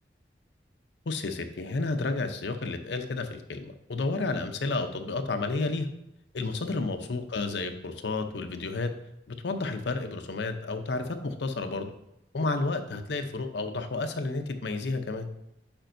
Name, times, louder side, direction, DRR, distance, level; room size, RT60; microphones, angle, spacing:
voice 1, 1.1-5.9 6.3-8.9 9.3-11.9 12.3-15.3, left 3 dB, 80° left, 7 dB, 0.6 m, -31 dB
8.8 x 5.1 x 2.6 m, 0.85 s
head